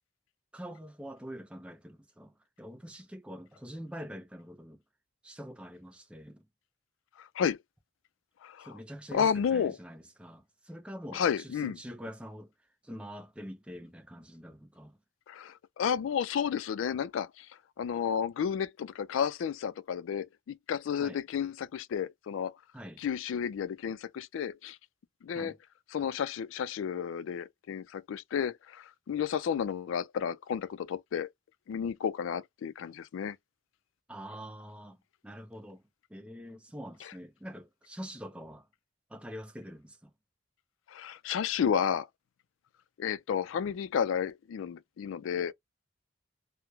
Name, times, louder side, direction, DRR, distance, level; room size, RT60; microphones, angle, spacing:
voice 1, 0.5-4.8 5.2-6.5 8.6-12.5 12.8-15.0 21.0-21.2 22.7-23.0 25.3-25.6 34.1-35.8 36.1-38.7 39.1-40.1, equal, 5° right, 0.4 m, -45 dB
voice 2, 7.2-7.6 8.4-8.7 9.1-9.8 11.1-11.7 15.3-17.5 17.8-22.6 23.0-24.8 25.2-25.5 25.9-31.3 31.7-33.4 40.9-42.1 43.0-45.5, left 7 dB, 80° left, 0.3 m, -32 dB
3.0 x 2.0 x 2.3 m
head